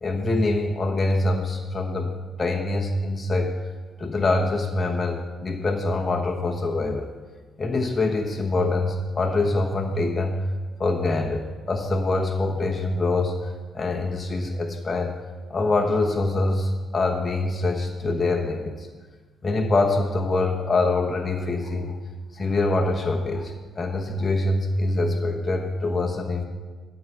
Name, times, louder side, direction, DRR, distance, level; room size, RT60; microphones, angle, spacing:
voice 1, 0.0-2.1 2.4-3.5 4.0-7.1 7.6-10.4 10.8-15.1 15.5-18.9 19.4-22.0 22.3-26.4, left 2 dB, 30° left, 1 dB, 1.0 m, -24 dB
11.5 x 4.6 x 7.0 m, 1.4 s
cardioid pair, 90°, 0 cm